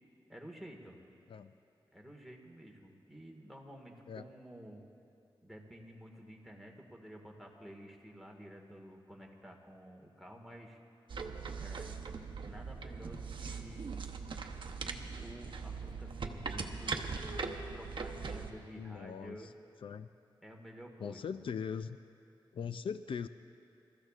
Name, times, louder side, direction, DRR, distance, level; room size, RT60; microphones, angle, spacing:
voice 1, 0.3-1.0 1.9-4.8 5.4-10.8 11.5-11.9 12.4-13.9 14.8-19.5 20.4-21.4, equal, ahead, 0 dB, 1.7 m, -51 dB
sound 1, 11.1-18.5, right 4 dB, 70° right, 0.8 m, -40 dB
voice 2, 18.7-19.5 19.8-20.1 21.0-22.0 22.5-23.3, left 6 dB, 75° left, 11 dB, 0.4 m, -40 dB
27.5 x 14.0 x 2.5 m, 2.6 s
wide cardioid pair, 90°, 9 cm